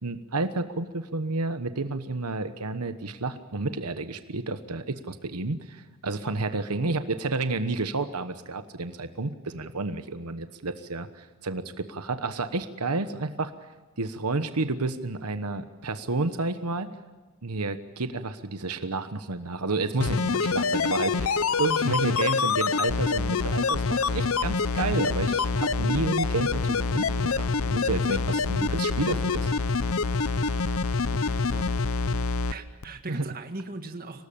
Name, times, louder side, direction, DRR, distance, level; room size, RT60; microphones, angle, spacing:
voice 1, 0.0-13.5 14.0-16.9 17.4-29.5 33.1-33.3, right 3 dB, 90° right, 10 dB, 1.2 m, -30 dB
sound 1, 20.0-32.5 32.8-32.9, left 4 dB, 65° left, 0.7 m, -26 dB
voice 2, 31.1-31.7 32.5-34.3, right 2 dB, 40° right, 6 dB, 1.9 m, -39 dB
25.0 x 18.5 x 8.7 m, 1.3 s
head